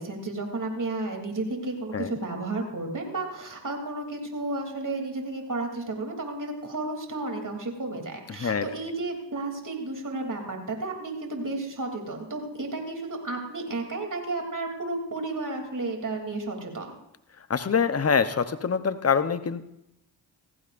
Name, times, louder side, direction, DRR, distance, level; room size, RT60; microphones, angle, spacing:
voice 1, 0.0-16.9, right 2 dB, 40° right, 2 dB, 3.2 m, -32 dB
voice 2, 17.5-19.7, left 6 dB, 30° left, 11 dB, 0.9 m, -25 dB
18.0 x 15.0 x 2.6 m, 0.83 s
cardioid pair, 45°, 46 cm